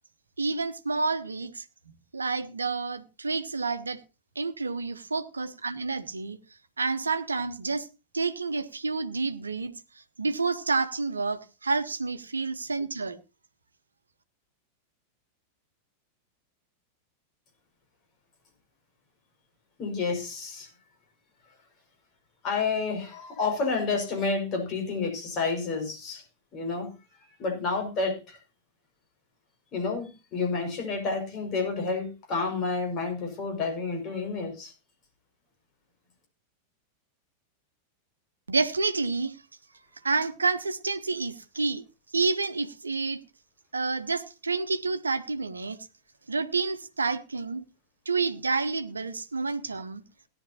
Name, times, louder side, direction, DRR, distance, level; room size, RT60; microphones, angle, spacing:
voice 1, 0.4-1.6 2.1-4.0 4.3-6.4 6.8-7.9 8.1-9.7 10.2-13.2 38.5-39.4 40.0-41.8 42.1-43.2 43.7-45.8 46.3-47.6 48.1-50.0, right 4 dB, 75° right, 1.0 m, -29 dB
voice 2, 19.8-20.7 22.4-26.2 26.5-26.9 27.4-28.4 29.7-34.7, left 4 dB, 35° left, 5.7 m, -30 dB
17.5 x 11.0 x 2.9 m
figure-of-eight pair, 90°, 0 cm